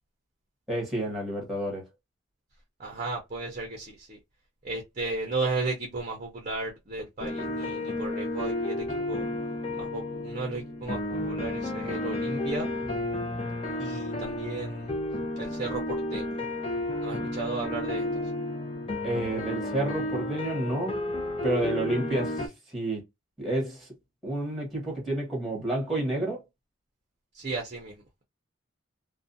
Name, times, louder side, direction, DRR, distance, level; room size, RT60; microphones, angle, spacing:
voice 1, 0.7-1.8 19.0-21.0 21.4-23.0 23.4-23.9 24.2-26.4, right 1 dB, ahead, 1.1 m, -30 dB
voice 2, 2.8-4.2 4.6-9.3 9.8-12.7 13.8-15.0 15.4-15.8 16.1-16.3 17.0-18.0 27.3-27.9, right 3 dB, 35° right, 0.5 m, -34 dB
sound 1, 7.2-22.5, left 1 dB, 25° left, 0.6 m, -32 dB
2.4 x 2.1 x 2.6 m
head